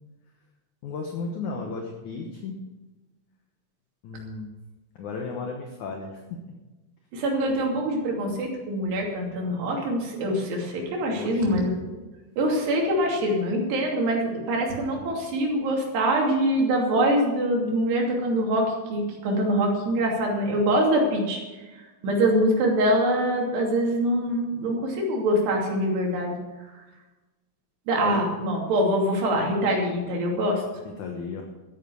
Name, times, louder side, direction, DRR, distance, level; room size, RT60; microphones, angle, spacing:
voice 1, 0.8-2.6 4.0-4.5 5.0-6.2 11.1-11.6 28.0-28.2 31.0-31.4, left 4 dB, 65° left, 2 dB, 2.0 m, -34 dB
voice 2, 7.1-11.7 12.4-26.4 26.6-26.8 27.9-30.6, right 1 dB, 70° right, -1 dB, 4.8 m, -24 dB
14.0 x 9.3 x 7.0 m, 1.2 s
omnidirectional pair, 5.1 m